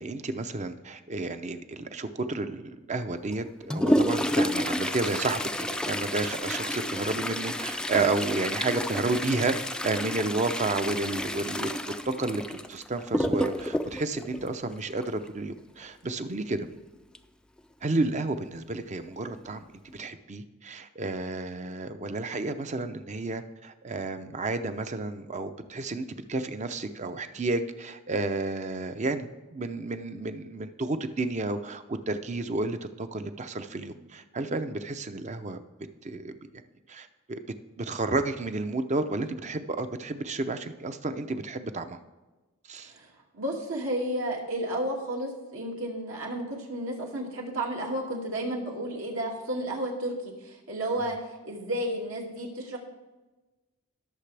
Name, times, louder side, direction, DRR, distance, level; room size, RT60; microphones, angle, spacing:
voice 1, 0.0-9.6 9.8-16.7 17.8-19.7 19.9-35.6 36.0-36.5 36.9-37.4 37.8-42.0 42.7-42.9 51.0-51.1, right 3 dB, 35° right, 9 dB, 0.6 m, -31 dB
Toilet flush, 3.3-15.3 17.1-17.2 17.6-17.7 18.5-18.6 19.2-19.5 19.9-20.1, left 1 dB, 5° left, 0.3 m, -30 dB
voice 2, 42.8-51.2 51.4-52.8, right 1 dB, 75° right, -2 dB, 2.4 m, -32 dB
20.0 x 6.7 x 3.4 m, 1.1 s
head